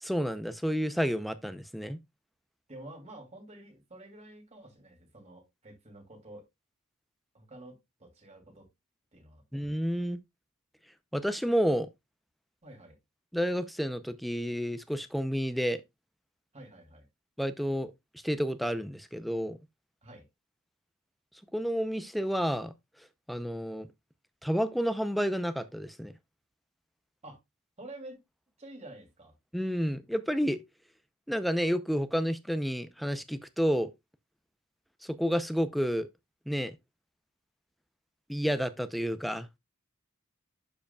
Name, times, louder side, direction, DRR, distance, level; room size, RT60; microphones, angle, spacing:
voice 1, 0.0-2.0 9.5-10.2 11.1-11.9 13.3-15.8 17.4-17.9 18.2-19.6 21.5-22.7 23.3-23.9 24.4-26.1 29.5-30.6 31.3-33.9 35.0-36.1 36.5-36.8 38.3-39.5, equal, ahead, 0.5 m, -30 dB
voice 2, 2.7-6.4 7.3-8.7 9.1-9.4 12.6-13.0 16.5-17.1 20.0-20.2 27.2-27.4 27.8-28.2 28.6-29.3, right 1 dB, 30° right, 2.7 m, -49 dB
11.5 x 5.0 x 2.3 m
head